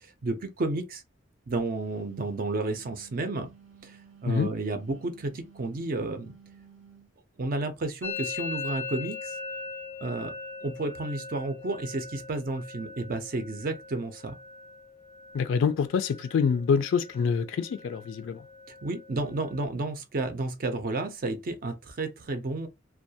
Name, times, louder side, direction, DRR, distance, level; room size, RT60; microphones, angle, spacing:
voice 1, 0.0-1.0 1.5-3.5 3.8-6.3 7.4-9.4 10.0-10.3 10.6-14.3 18.8-22.7, right 2 dB, 45° right, 0.5 m, -32 dB
Wind instrument woodwind instrument, 1.8-7.1, right 7 dB, 80° right, 0.7 m, -55 dB
Musical instrument, 8.0-15.7 15.9-16.5 16.8-17.4 17.6-19.6, left 4 dB, 10° left, 0.5 m, -40 dB
voice 2, 15.3-18.4, left 6 dB, 75° left, 0.3 m, -26 dB
2.3 x 2.2 x 2.7 m
head